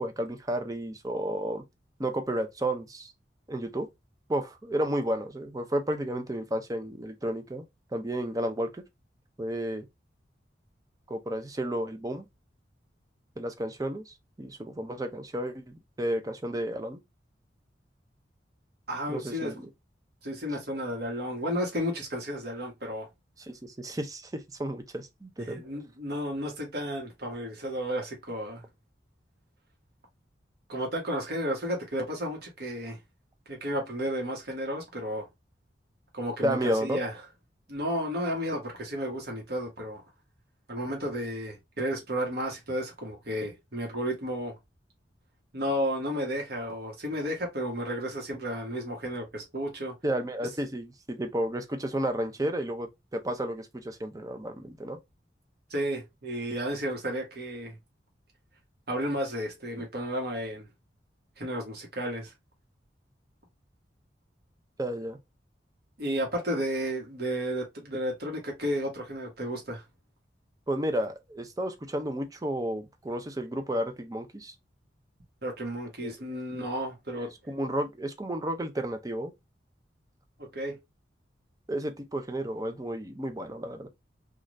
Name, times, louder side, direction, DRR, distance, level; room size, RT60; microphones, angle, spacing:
voice 1, 0.0-1.6 2.0-3.1 3.5-3.9 4.3-7.6 7.9-8.7 9.4-9.8 11.1-12.3 13.4-17.0 19.1-19.6 23.4-25.6 36.4-37.0 50.0-55.0 64.8-65.2 70.7-74.5 76.0-76.1 77.2-79.3 81.7-83.9, right 1 dB, 20° right, 0.5 m, -32 dB
voice 2, 18.9-19.6 20.2-23.1 25.5-28.6 30.7-33.0 33.5-35.3 36.1-37.1 37.7-40.0 40.7-44.6 45.5-49.9 55.7-57.8 58.9-60.7 61.4-62.3 66.0-69.8 75.4-77.3 80.4-80.8, equal, 60° right, 1.1 m, -32 dB
3.2 x 2.4 x 2.5 m
head